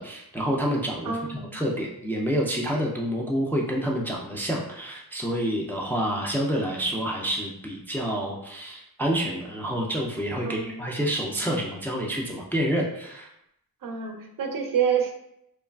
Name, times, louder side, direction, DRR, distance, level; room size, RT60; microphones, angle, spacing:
voice 1, 0.0-13.3, equal, 5° left, -2 dB, 0.3 m, -28 dB
voice 2, 1.1-1.5 10.4-10.8 13.8-15.1, right 7 dB, 65° right, 4 dB, 0.5 m, -27 dB
2.9 x 2.3 x 2.3 m, 0.79 s
wide cardioid pair, 110°, 37 cm